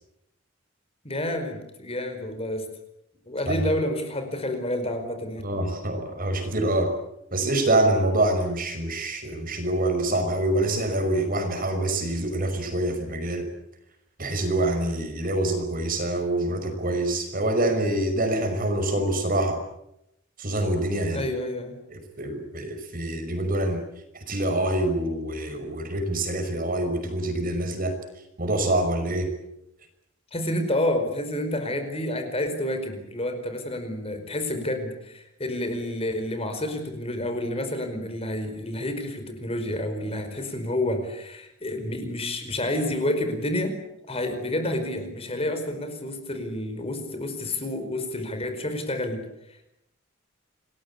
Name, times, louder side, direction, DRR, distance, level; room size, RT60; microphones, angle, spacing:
voice 1, 1.0-2.7 3.3-5.4 21.1-21.7 30.3-43.8 44.1-49.2, left 1 dB, 30° left, 7 dB, 4.8 m, -29 dB
voice 2, 5.4-6.9 7.3-13.5 14.2-19.6 20.4-21.2 21.9-23.8 24.3-28.0 28.4-29.3, right 1 dB, 40° right, 7 dB, 5.7 m, -25 dB
28.0 x 21.0 x 8.6 m, 0.83 s
head